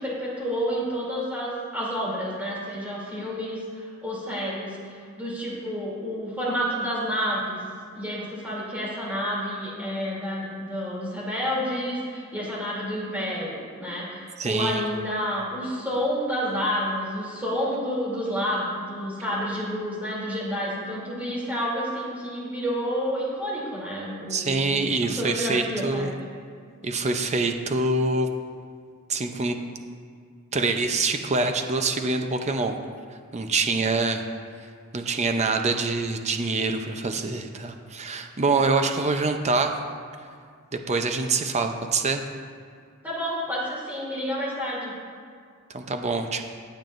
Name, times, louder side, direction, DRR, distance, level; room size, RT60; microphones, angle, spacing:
voice 1, 0.0-7.6 7.9-26.1 43.0-44.9, equal, 10° right, -7 dB, 2.9 m, -29 dB
voice 2, 14.4-14.8 24.3-26.1 26.8-28.3 29.1-29.5 30.5-32.8 33.3-34.2 34.9-39.7 40.7-42.2 45.7-46.4, right 3 dB, 30° right, 6 dB, 0.6 m, -25 dB
21.5 x 7.5 x 2.6 m, 2.1 s
head